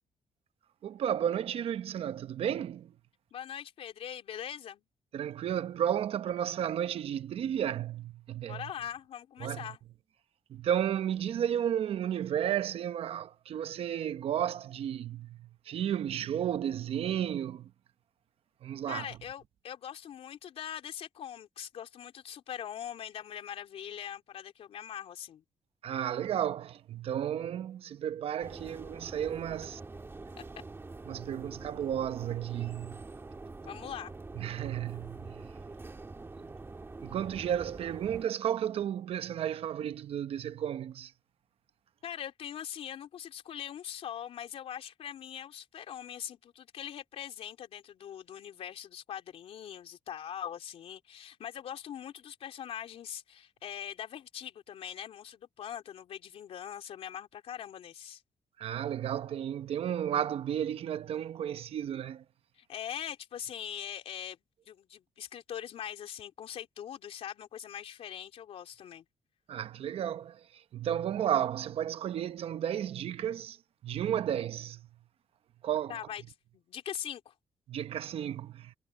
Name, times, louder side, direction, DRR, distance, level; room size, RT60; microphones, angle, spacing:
voice 1, 0.8-2.9 5.1-8.7 9.4-9.7 10.5-17.7 18.6-19.1 25.8-29.8 31.1-33.0 34.3-35.5 37.0-41.1 58.6-62.2 69.5-73.6 73.8-74.9 75.6-76.0 77.7-78.7, right 10 dB, 70° right, 0.9 m, -33 dB
voice 2, 3.3-4.8 8.4-9.8 18.9-25.4 33.6-34.1 42.0-58.2 62.5-64.4 64.7-69.0 75.9-76.2 76.5-77.3, left 9 dB, 75° left, 3.3 m, -42 dB
sound 1, 28.4-38.3, right 3 dB, 25° right, 1.9 m, -45 dB
cardioid pair, 100°, 10 cm